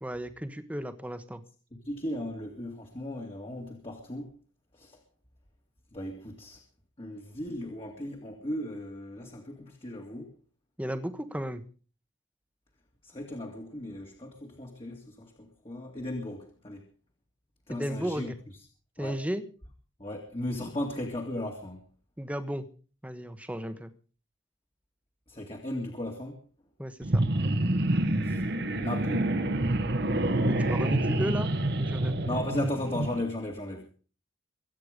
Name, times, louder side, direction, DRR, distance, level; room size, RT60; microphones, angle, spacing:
voice 1, 0.0-1.4 10.8-11.6 17.7-18.4 19.0-19.4 22.2-22.7 23.0-23.9 26.8-27.2 30.5-31.5 31.8-32.2, equal, 10° right, 10 dB, 1.3 m, -34 dB
voice 2, 1.7-4.3 4.7-5.0 5.9-6.6 7.0-10.3 13.0-16.9 17.7-18.3 19.0-19.2 20.0-21.9 25.3-26.4 28.2-28.4 28.8-29.3 32.2-33.9, left 1 dB, 30° left, 1 dB, 2.4 m, -36 dB
sound 1, 27.0-33.2, right 1 dB, 60° right, 1.7 m, -27 dB
23.0 x 9.3 x 5.2 m, 0.40 s
head